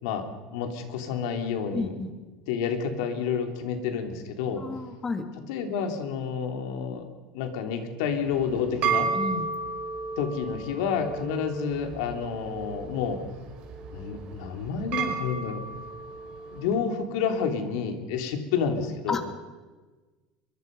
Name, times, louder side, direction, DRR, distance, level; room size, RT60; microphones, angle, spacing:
voice 1, 0.0-1.9 2.5-4.6 5.5-7.1 7.3-9.1 10.2-13.2 13.9-15.6 16.5-19.2, left 6 dB, 80° left, 5 dB, 3.3 m, -29 dB
voice 2, 1.7-2.1 4.6-5.3 9.1-9.5 19.1-19.2, left 4 dB, 20° left, 7 dB, 2.4 m, -31 dB
sound 1, 8.2-16.7, right 5 dB, 55° right, 4.9 m, -33 dB
23.0 x 22.5 x 5.5 m, 1.3 s
supercardioid pair, 135°, 2 cm